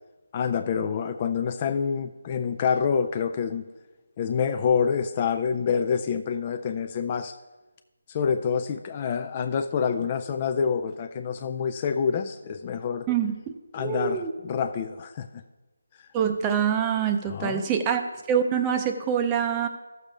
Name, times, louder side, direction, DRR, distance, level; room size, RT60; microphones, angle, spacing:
voice 1, 0.3-3.7 4.2-7.3 8.1-13.1 13.7-15.4 16.0-16.1 17.3-17.6, left 6 dB, 25° left, 8 dB, 0.3 m, -27 dB
voice 2, 13.8-14.3 16.1-18.0 18.3-19.7, right 8 dB, 15° right, 7 dB, 0.6 m, -25 dB
13.0 x 6.7 x 3.4 m, 1.2 s
figure-of-eight pair, 160°, 0 cm